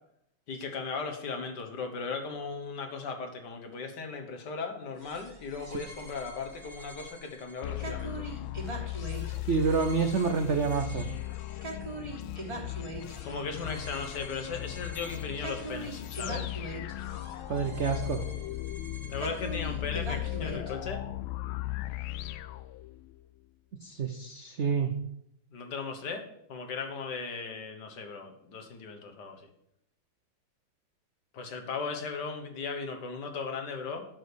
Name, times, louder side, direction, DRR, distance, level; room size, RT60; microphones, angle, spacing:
voice 1, 0.5-8.3 13.2-16.5 19.1-21.0 25.5-29.5 31.3-34.1, left 4 dB, 60° left, 4 dB, 1.7 m, -37 dB
sound 1, 5.0-20.7, right 2 dB, 20° right, 1.6 m, -43 dB
sound 2, 7.6-23.2, left 16 dB, 85° left, 1.4 m, -37 dB
voice 2, 9.5-11.1 17.5-18.2 23.8-24.9, right 5 dB, 90° right, 5 dB, 0.6 m, -28 dB
8.3 x 6.3 x 6.8 m, 0.78 s
omnidirectional pair, 2.2 m